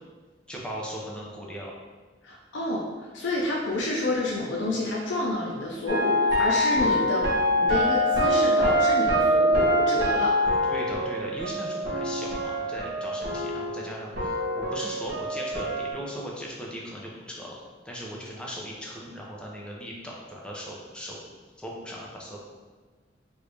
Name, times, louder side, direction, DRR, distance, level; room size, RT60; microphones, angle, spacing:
voice 1, 0.5-1.7 10.6-17.6 17.8-21.2 21.6-22.4, equal, 5° left, -4 dB, 0.5 m, -38 dB
voice 2, 2.2-10.4, left 1 dB, 90° left, -3 dB, 0.5 m, -29 dB
sound 1, 5.9-13.9 14.1-15.9, equal, 60° right, 1.1 m, -24 dB
3.1 x 2.6 x 3.3 m, 1.4 s
head